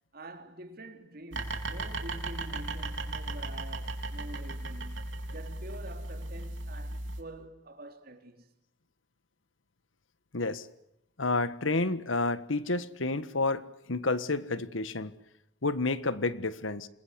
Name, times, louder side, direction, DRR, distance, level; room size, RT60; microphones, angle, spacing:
voice 1, 0.1-8.5, right 1 dB, 50° right, 3.3 m, -47 dB
sound 1, 1.3-7.2, right 2 dB, 75° right, 3.6 m, -36 dB
voice 2, 10.3-10.7 11.2-15.1 15.6-16.9, left 3 dB, 85° left, 1.5 m, -30 dB
28.0 x 21.0 x 8.2 m
head